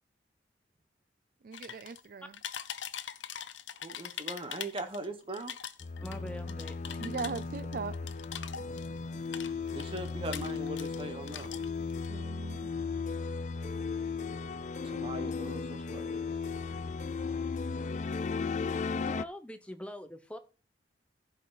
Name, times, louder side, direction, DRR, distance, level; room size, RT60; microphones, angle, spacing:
voice 1, 1.4-2.3 7.0-8.0 12.1-12.7, right 5 dB, 50° right, 0.4 m, -39 dB
sound 1, 1.5-2.1 2.3-5.1 5.3-9.0 9.3-11.0 11.3-12.1, left 9 dB, 85° left, 0.7 m, -42 dB
voice 2, 3.8-5.5 9.7-11.5 14.8-16.2, right 1 dB, 30° right, 1.3 m, -40 dB
sound 2, 5.8-19.2, left 4 dB, 40° left, 0.4 m, -36 dB
voice 3, 6.0-7.2 18.8-20.4, equal, 5° left, 0.9 m, -45 dB
15.0 x 5.4 x 4.1 m
head